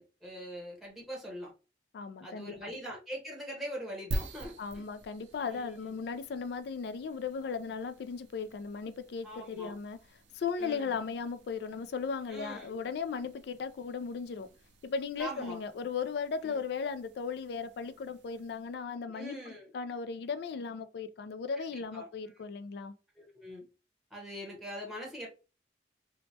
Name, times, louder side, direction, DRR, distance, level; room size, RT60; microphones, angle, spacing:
voice 1, 0.0-1.5 2.2-4.8 5.5-5.9 9.2-9.7 10.6-11.0 12.3-12.8 15.2-15.6 16.4-16.6 19.1-19.7 21.9-22.1 22.3-22.6 23.1-23.6 24.1-25.3, equal, ahead, 0.8 m, -43 dB
voice 2, 1.9-2.5 4.6-10.0 10.3-14.5 14.8-22.9, left 5 dB, 65° left, 0.3 m, -37 dB
sound 1, 4.1-18.8, right 1 dB, 85° right, 0.5 m, -47 dB
3.1 x 2.1 x 2.7 m
head